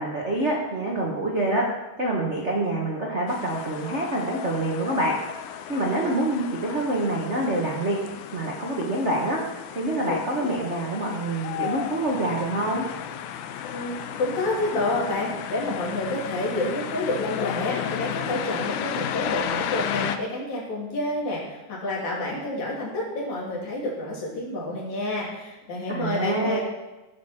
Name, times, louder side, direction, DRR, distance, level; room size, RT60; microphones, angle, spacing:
voice 1, 0.0-1.6 2.0-5.2 5.7-8.0 8.3-12.8 25.9-26.6, right 1 dB, 85° right, -2 dB, 0.6 m, -26 dB
sound 1, 3.3-20.2, left 9 dB, 80° left, 2.0 m, -33 dB
voice 2, 13.7-26.6, left 2 dB, 65° left, -4 dB, 4.1 m, -29 dB
15.5 x 6.6 x 4.4 m, 1.1 s
omnidirectional pair, 3.6 m